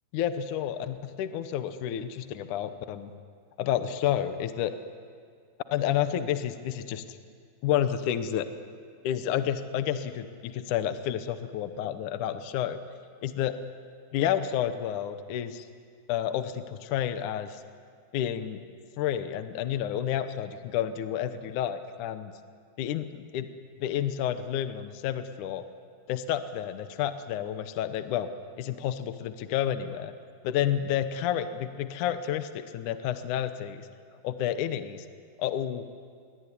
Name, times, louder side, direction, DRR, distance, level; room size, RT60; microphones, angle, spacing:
voice 1, 0.1-3.1 3.6-4.8 5.7-7.2 7.6-8.5 9.0-12.8 13.2-13.6 14.1-15.7 16.1-17.6 18.1-18.6 19.0-22.3 22.8-23.5 23.8-25.6 26.1-28.3 28.6-30.1 30.4-33.9 34.2-35.1 35.4-35.9, left 10 dB, 70° left, 10 dB, 1.9 m, -30 dB
24.0 x 22.5 x 10.0 m, 2.2 s
omnidirectional pair, 4.8 m